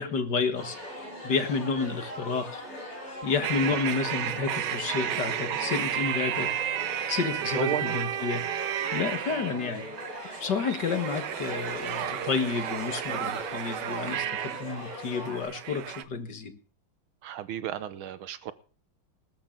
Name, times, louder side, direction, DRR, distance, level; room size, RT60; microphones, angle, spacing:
voice 1, 0.0-2.6 3.2-6.5 7.1-8.4 8.9-9.8 10.4-14.3 14.6-16.6, left 5 dB, 55° left, 9 dB, 2.2 m, -30 dB
sound 1, 0.5-15.4, equal, 30° left, 7.5 m, -41 dB
sound 2, 3.4-16.0, right 11 dB, 65° right, 1.3 m, -33 dB
voice 2, 7.6-8.0 17.2-18.5, right 11 dB, 80° right, 15 dB, 1.8 m, -33 dB
20.0 x 12.0 x 3.9 m, 0.39 s
omnidirectional pair, 2.3 m